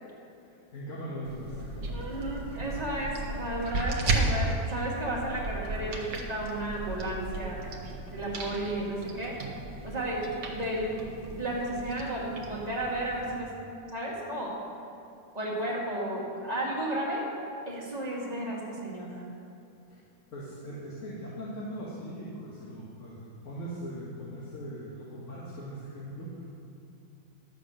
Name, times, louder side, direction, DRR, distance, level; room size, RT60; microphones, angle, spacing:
voice 1, 0.4-2.2 19.9-20.0 20.3-26.5, equal, 40° left, -6 dB, 1.9 m, -40 dB
sound 1, 1.2-13.4, right 2 dB, 60° right, 1.7 m, -35 dB
voice 2, 1.9-7.6 8.1-9.4 9.8-13.5 13.9-14.6 15.3-17.3 17.7-19.2, right 1 dB, 20° right, -5 dB, 2.4 m, -33 dB
11.5 x 8.2 x 6.4 m, 2.8 s
omnidirectional pair, 2.1 m